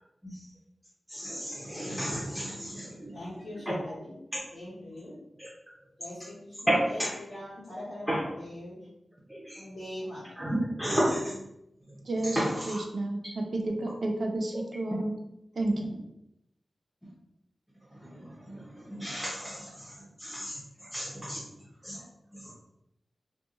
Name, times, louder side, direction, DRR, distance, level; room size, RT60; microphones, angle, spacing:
voice 1, 1.1-3.1 5.4-5.5 6.7-7.2 8.1-8.3 9.3-9.6 10.4-11.4 12.4-12.7 15.8-15.9 18.0-19.9 20.2-20.6 20.9-21.4 21.8-22.0, equal, 5° right, -7 dB, 0.7 m, -32 dB
voice 2, 3.1-4.1 4.5-5.1 6.0-8.8 9.5-10.2, left 1 dB, 75° left, -11 dB, 1.3 m, -42 dB
voice 3, 12.1-15.1 15.5-16.0, right 2 dB, 65° right, 2 dB, 0.5 m, -31 dB
2.8 x 2.3 x 3.6 m, 0.83 s
wide cardioid pair, 120°, 0 cm